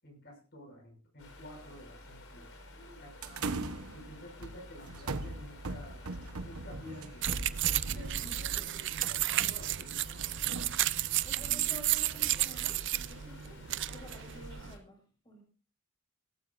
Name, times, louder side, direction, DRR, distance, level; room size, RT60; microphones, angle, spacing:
voice 1, 0.0-2.5 3.0-3.6 3.9-6.1 6.4-7.2 7.9-9.7 11.3-11.9, equal, 50° left, 1 dB, 6.4 m, -50 dB
sound 1, 1.2-14.8, left 1 dB, 70° left, 4.3 m, -52 dB
sound 2, 3.2-11.6, right 2 dB, 85° right, 1.1 m, -40 dB
sound 3, 7.2-14.8, right 15 dB, 55° right, 0.5 m, -32 dB
voice 2, 11.2-13.6 13.9-15.4, equal, 20° left, 0 dB, 5.8 m, -51 dB
17.0 x 15.0 x 2.6 m, 0.37 s
head